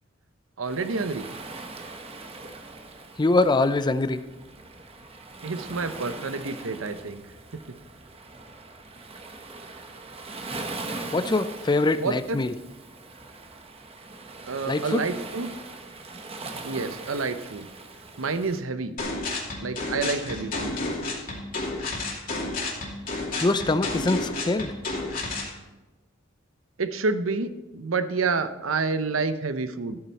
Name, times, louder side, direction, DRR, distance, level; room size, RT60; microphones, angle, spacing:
Waves surf, 0.6-18.6, right 3 dB, 30° right, 1.0 m, -41 dB
voice 1, 0.6-1.3 5.4-7.2 7.5-7.6 12.0-12.4 14.5-15.5 16.6-17.7 18.2-18.9 19.6-20.7 26.8-30.0, right 4 dB, 80° right, 11 dB, 0.8 m, -28 dB
voice 2, 3.2-4.2 11.1-12.5 14.7-15.1 23.4-24.7, left 2 dB, 20° left, 12 dB, 0.5 m, -23 dB
sound 1, 19.0-25.5, left 2 dB, 45° left, 2.6 m, -31 dB
13.5 x 8.9 x 4.1 m, 1.1 s
head